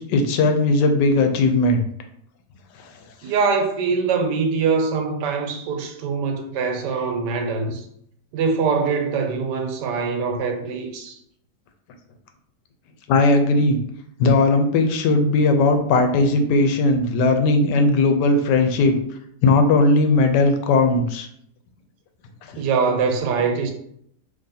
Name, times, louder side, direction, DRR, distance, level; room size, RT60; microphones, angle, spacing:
voice 1, 0.1-1.8 13.1-13.8 14.2-18.9 19.4-21.3 22.5-22.6, left 2 dB, 90° left, 1.2 m, -18 dB
voice 2, 3.2-7.9 8.3-11.2 22.6-23.7, right 5 dB, 80° right, 1.2 m, -23 dB
3.1 x 2.7 x 3.8 m
omnidirectional pair, 1.8 m